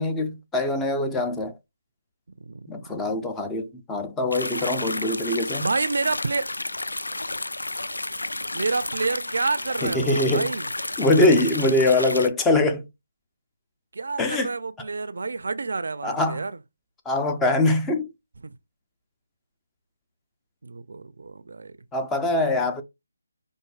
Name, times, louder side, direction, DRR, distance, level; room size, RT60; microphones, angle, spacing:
voice 1, 0.0-1.5 2.7-5.7 9.8-10.5 11.0-12.9 14.2-14.5 16.0-16.4 17.1-18.1 21.9-22.8, left 2 dB, 10° left, 0.4 m, -23 dB
sound 1, 4.3-12.3, left 2 dB, 85° left, 0.4 m, -31 dB
voice 2, 5.6-6.5 8.5-10.7 13.9-16.5 18.4-18.5 20.6-21.7, right 4 dB, 60° right, 0.4 m, -28 dB
5.7 x 2.6 x 2.3 m
figure-of-eight pair, 160°, 0 cm